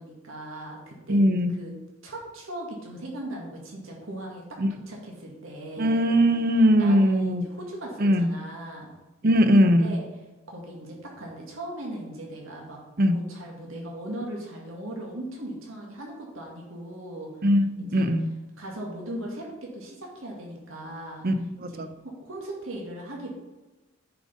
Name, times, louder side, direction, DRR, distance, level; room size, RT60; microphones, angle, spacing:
voice 1, 0.0-1.2 1.5-1.7 2.0-6.0 6.8-8.9 9.6-10.1 10.5-12.8 13.1-17.3 17.8-18.1 18.6-21.2 21.6-23.3, right 1 dB, 85° right, -1 dB, 2.1 m, -38 dB
voice 2, 1.1-1.6 4.6-4.7 5.8-7.4 8.0-8.3 9.2-9.9 13.0-13.2 17.4-18.3 21.2-21.3 21.8-21.9, equal, 45° right, 9 dB, 0.7 m, -20 dB
10.0 x 5.2 x 5.3 m, 1.1 s
head